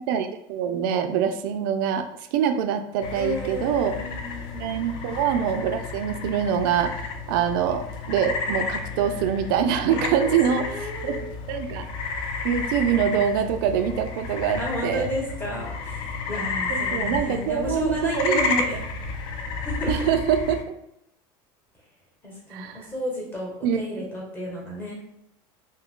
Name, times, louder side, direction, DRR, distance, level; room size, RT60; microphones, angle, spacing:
voice 1, 0.0-2.0 2.3-3.9 4.6-11.1 11.5-11.9 12.4-15.1 16.7-18.8 19.9-20.6 22.5-22.8 23.6-23.8, right 8 dB, 80° right, 7 dB, 0.4 m, -24 dB
sound 1, 3.0-20.6, left 4 dB, 45° left, 0.4 m, -32 dB
voice 2, 3.1-4.9 9.9-11.3 14.6-18.8 19.6-19.9 22.2-25.0, equal, 15° left, -3 dB, 1.0 m, -32 dB
2.7 x 2.3 x 3.7 m, 0.79 s
cardioid pair, 150°, 11 cm